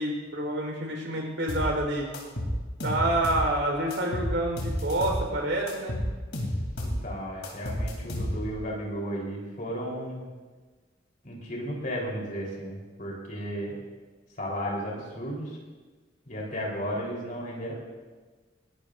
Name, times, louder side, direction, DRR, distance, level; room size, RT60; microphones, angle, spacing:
voice 1, 0.0-2.1 2.8-6.0, right 1 dB, 85° right, 0 dB, 4.5 m, -28 dB
sound 1, 1.5-1.7 2.1-3.5 3.9-5.3 5.7-7.0 7.4-8.6, equal, 65° left, 3.6 m, -31 dB
voice 2, 6.8-10.2 11.2-13.7 14.4-15.5 16.3-17.7, equal, 45° left, -3 dB, 4.3 m, -34 dB
20.5 x 18.0 x 2.7 m, 1.4 s
head